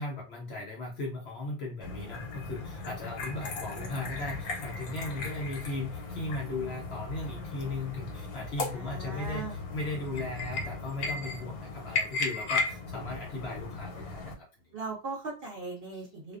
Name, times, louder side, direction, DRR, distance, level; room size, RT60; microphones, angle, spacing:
voice 1, 0.0-9.4 9.7-14.7, left 2 dB, 60° left, 0 dB, 0.8 m, -37 dB
sound 1, 1.8-14.3, left 3 dB, 85° left, 1.1 m, -36 dB
voice 2, 2.8-3.2 3.5-4.0 8.6-9.6 14.7-16.4, right 3 dB, 55° right, -2 dB, 0.7 m, -40 dB
2.4 x 2.2 x 2.3 m, 0.35 s
omnidirectional pair, 1.5 m